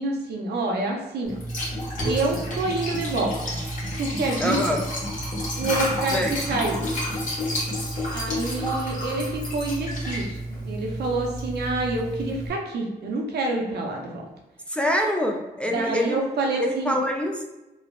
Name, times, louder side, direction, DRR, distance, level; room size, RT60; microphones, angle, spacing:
voice 1, 0.0-1.4 2.0-3.4 4.0-4.6 5.6-6.2 6.5-6.8 8.1-14.3 15.7-17.0, right 2 dB, 75° right, 1 dB, 0.5 m, -27 dB
Liquid, 1.2-12.5, equal, 50° left, 1.1 m, -30 dB
voice 2, 4.4-4.8 6.1-6.3 14.7-16.2 16.6-17.4, equal, 5° left, 1 dB, 0.3 m, -25 dB
3.1 x 2.0 x 2.3 m, 1.0 s
cardioid pair, 85°, 17 cm